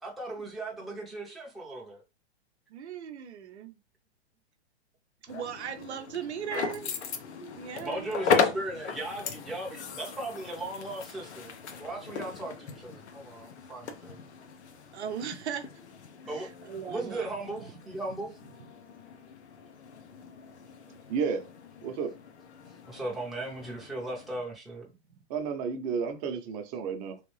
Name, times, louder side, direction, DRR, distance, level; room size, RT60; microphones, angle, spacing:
voice 1, 0.0-2.0 7.8-11.5 11.8-14.2 16.2-16.5 16.8-18.3 22.9-24.9, right 2 dB, ahead, 0.6 m, -37 dB
voice 2, 2.7-3.7 5.2-6.9 7.5-8.1 9.5-9.6 14.9-15.7 16.2-17.5 25.1-25.2, right 8 dB, 80° right, 0.7 m, -38 dB
sound 1, 5.3-24.4, left 6 dB, 85° left, 0.7 m, -37 dB
voice 3, 21.1-21.5 21.8-22.1 25.3-27.2, right 6 dB, 35° right, 0.8 m, -32 dB
3.1 x 2.6 x 3.2 m
hypercardioid pair, 135°, 33 cm